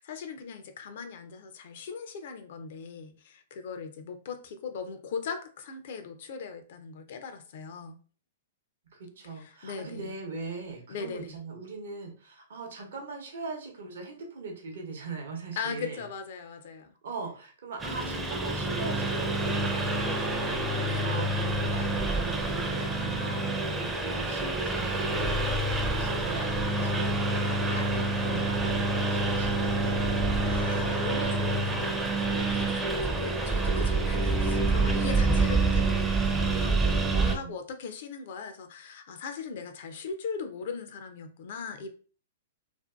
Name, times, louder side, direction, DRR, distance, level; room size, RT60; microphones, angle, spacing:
voice 1, 0.0-8.0 9.4-10.2 10.9-11.4 15.6-16.9 20.8-21.2 30.4-41.9, left 5 dB, 60° left, 7 dB, 0.4 m, -39 dB
voice 2, 8.9-16.0 17.0-25.4 25.9-30.0 36.9-37.5, right 4 dB, 65° right, 1 dB, 0.7 m, -41 dB
Engine, 17.8-37.4, right 2 dB, 10° right, 0.4 m, -27 dB
2.6 x 2.3 x 2.2 m, 0.40 s
hypercardioid pair, 110°, 0 cm